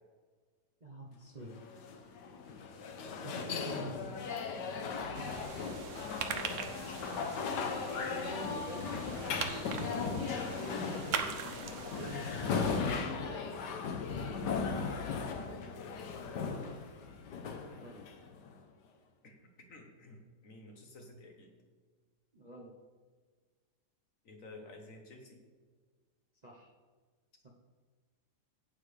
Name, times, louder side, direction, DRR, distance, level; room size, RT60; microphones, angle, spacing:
voice 1, 0.8-1.6 3.2-4.1 4.8-5.5 7.1-7.3 8.0-8.9 9.3-11.3 11.8-12.5 17.7-18.0 22.3-22.7 26.4-26.7 27.4-27.5, right 1 dB, 35° right, -2 dB, 0.8 m, -47 dB
sound 1, 1.5-18.5, left 5 dB, 80° left, 1.5 m, -37 dB
voice 2, 3.4-4.0 4.7-5.0 15.8-15.9 16.2-16.8 19.2-21.5 24.2-25.4, left 2 dB, 55° left, 2 dB, 1.4 m, -53 dB
sound 2, 5.1-12.8, right 6 dB, 60° right, 0.9 m, -42 dB
11.5 x 8.8 x 3.3 m, 1.5 s
omnidirectional pair, 1.8 m